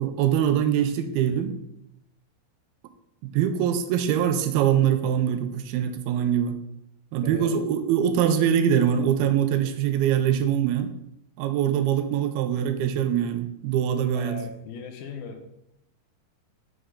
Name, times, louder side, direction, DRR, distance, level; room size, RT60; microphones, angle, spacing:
voice 1, 0.0-1.6 3.2-6.6 7.1-10.9 11.4-14.4, right 9 dB, 90° right, 9 dB, 2.5 m, -23 dB
voice 2, 7.2-7.6 14.1-15.4, left 5 dB, 80° left, 5 dB, 2.6 m, -37 dB
8.1 x 6.3 x 3.8 m, 0.81 s
omnidirectional pair, 4.4 m